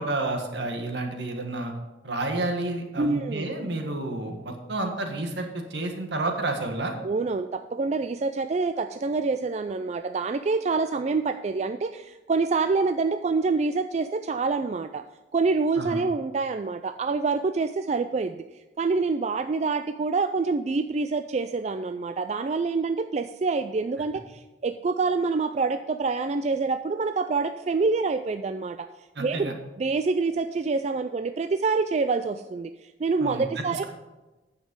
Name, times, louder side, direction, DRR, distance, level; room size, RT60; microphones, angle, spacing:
voice 1, 0.0-1.7 2.0-6.9 15.8-16.0 29.1-29.5 33.2-33.8, right 2 dB, 70° right, 4 dB, 1.7 m, -30 dB
voice 2, 3.0-3.4 7.0-15.0 15.3-18.4 18.8-28.9 29.2-33.8, right 4 dB, 35° right, 9 dB, 0.3 m, -26 dB
9.5 x 7.1 x 5.4 m, 1.1 s
head